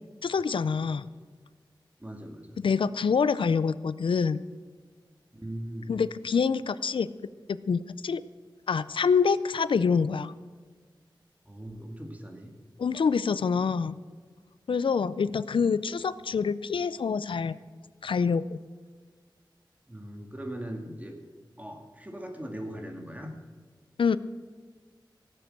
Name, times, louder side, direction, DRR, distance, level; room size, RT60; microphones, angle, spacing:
voice 1, 0.2-1.1 2.6-4.4 5.9-7.1 7.5-8.2 8.7-10.3 12.8-14.0 14.7-17.5 18.0-18.6 24.0-24.2, left 5 dB, 90° left, 16 dB, 0.4 m, -26 dB
voice 2, 2.0-2.6 5.3-5.9 11.5-12.5 19.9-21.1 21.6-23.3, right 1 dB, 20° right, 3 dB, 2.2 m, -39 dB
17.0 x 7.6 x 7.8 m, 1.5 s
wide cardioid pair, 80°, 8 cm